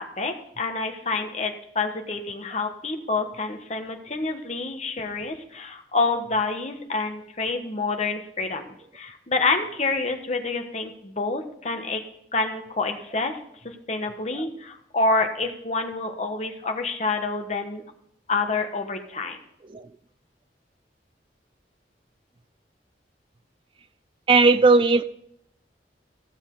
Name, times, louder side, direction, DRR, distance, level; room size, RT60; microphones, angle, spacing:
voice 1, 0.0-12.0 12.3-13.4 13.6-17.8 18.3-19.4, left 3 dB, 40° left, 5 dB, 1.3 m, -28 dB
voice 2, 24.3-25.0, right 3 dB, 30° right, 13 dB, 0.4 m, -18 dB
15.0 x 7.2 x 3.9 m, 0.74 s
head